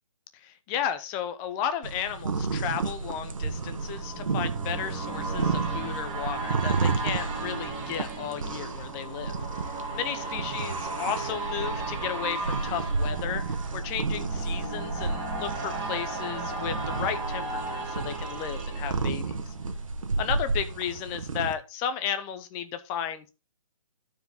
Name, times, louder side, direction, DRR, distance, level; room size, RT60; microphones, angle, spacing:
voice 1, 0.3-19.5 20.2-23.3, left 9 dB, 15° left, 0.5 m, -34 dB
sound 1, 1.8-21.5, right 4 dB, 75° right, 1.3 m, -32 dB
sound 2, 2.2-20.0 20.4-20.5, right 3 dB, 20° right, 1.8 m, -36 dB
12.0 x 4.7 x 3.7 m
hypercardioid pair, 150°, 17 cm